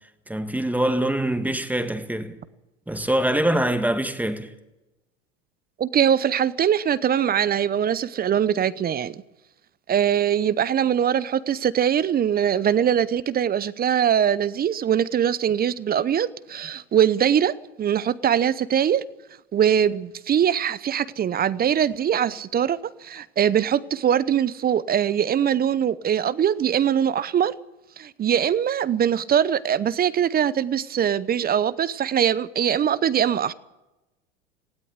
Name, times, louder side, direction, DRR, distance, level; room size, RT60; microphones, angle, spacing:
voice 1, 0.3-2.4 2.9-4.5, right 1 dB, 5° right, 1.7 m, -24 dB
voice 2, 5.8-9.2 9.9-19.0 19.5-27.5 28.0-33.5, right 9 dB, 25° right, 0.8 m, -22 dB
19.0 x 16.5 x 8.2 m
hypercardioid pair, 85°, 37 cm